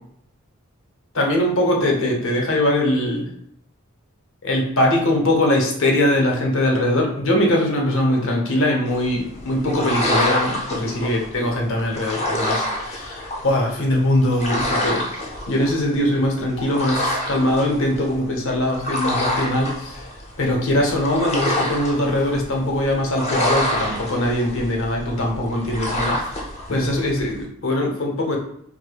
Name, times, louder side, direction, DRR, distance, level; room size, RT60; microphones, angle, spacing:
voice 1, 1.1-3.3 4.4-15.0 15.5-20.0 20.4-26.2 26.7-28.4, left 1 dB, 65° left, 0 dB, 0.8 m, -21 dB
sound 1, 8.9-27.4, left 1 dB, 30° left, 0.6 m, -27 dB
4.9 x 2.1 x 2.2 m, 0.70 s
head